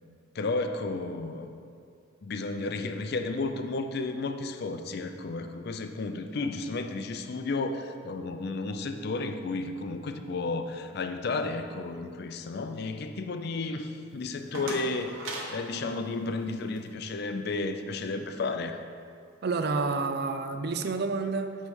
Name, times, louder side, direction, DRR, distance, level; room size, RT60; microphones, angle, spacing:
voice 1, 0.3-1.5 2.2-18.8, left 3 dB, 50° left, 7 dB, 0.4 m, -33 dB
sound 1, 14.1-16.9, right 2 dB, 75° right, 1.2 m, -40 dB
voice 2, 19.4-21.7, right 4 dB, 50° right, 7 dB, 0.4 m, -29 dB
8.6 x 3.2 x 6.3 m, 2.3 s
head